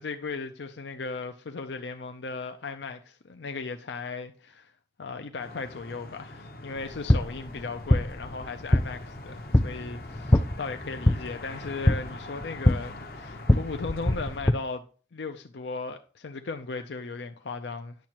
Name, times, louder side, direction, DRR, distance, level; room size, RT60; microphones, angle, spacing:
voice 1, 0.0-4.7 5.0-14.8 15.1-18.0, left 4 dB, 80° left, 0.6 m, -37 dB
sound 1, 5.4-14.4, left 2 dB, 55° left, 0.9 m, -43 dB
sound 2, 6.8-14.5, left 1 dB, 15° left, 0.4 m, -25 dB
10.5 x 7.2 x 3.0 m
head